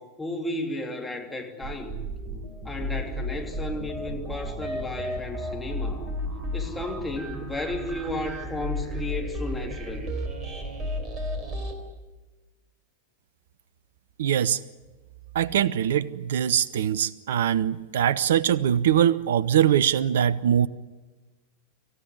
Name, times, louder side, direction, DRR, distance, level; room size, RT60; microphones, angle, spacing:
voice 1, 0.0-1.9 2.6-6.1 6.5-10.1, left 2 dB, 5° left, 1 dB, 3.2 m, -34 dB
sound 1, 1.6-11.7, equal, 30° right, 4.1 m, -33 dB
voice 2, 14.2-14.6 15.3-20.7, right 10 dB, 60° right, 20 dB, 0.8 m, -22 dB
26.5 x 15.5 x 9.7 m, 1.3 s
figure-of-eight pair, 90°, 0 cm